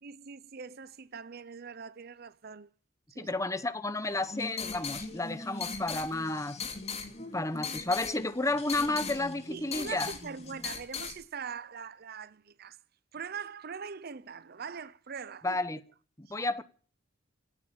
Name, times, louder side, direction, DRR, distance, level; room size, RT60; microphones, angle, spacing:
voice 1, 0.0-2.7 3.1-3.3 9.5-12.8 13.1-15.6 16.3-16.4, right 6 dB, 55° right, 0.7 m, -42 dB
voice 2, 3.2-6.6 7.3-10.1 15.4-15.8 16.2-16.6, left 2 dB, 15° left, 1.0 m, -32 dB
sound 1, 4.1-11.2, left 5 dB, 35° left, 2.6 m, -39 dB
17.0 x 8.7 x 8.7 m
head